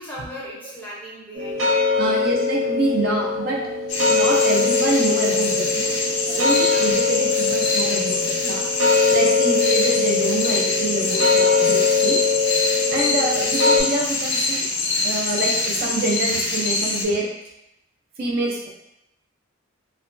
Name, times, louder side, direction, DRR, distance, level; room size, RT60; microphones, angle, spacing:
voice 1, 0.0-2.2 6.6-6.9, left 1 dB, 10° left, -7 dB, 0.5 m, -38 dB
sound 1, 1.3-13.8, left 4 dB, 75° right, 0.8 m, -21 dB
voice 2, 2.0-3.6 4.0-5.9 6.4-8.6 9.1-12.3 12.9-14.6 15.0-17.3 18.2-18.7, right 2 dB, 45° right, -2 dB, 0.3 m, -26 dB
sound 2, 3.9-17.0, left 3 dB, 55° left, 0.5 m, -25 dB
2.9 x 2.2 x 2.4 m, 0.87 s
head